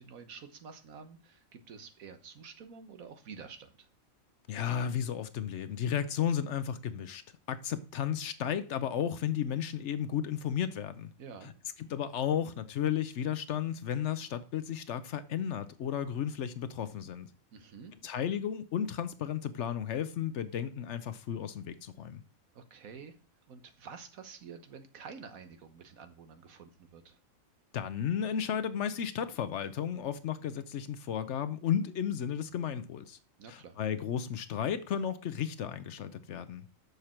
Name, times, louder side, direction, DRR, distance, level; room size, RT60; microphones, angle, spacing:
voice 1, 0.0-3.9 11.2-11.5 17.5-17.9 22.5-23.1 23.5-27.2 33.4-33.8, right 6 dB, 85° right, 1.5 m, -49 dB
voice 2, 4.5-7.2 7.5-11.1 11.4-11.5 11.8-17.3 18.0-22.2 27.7-33.2 33.5-36.7, left 9 dB, 65° left, 0.9 m, -33 dB
6.9 x 6.5 x 4.4 m
omnidirectional pair, 1.4 m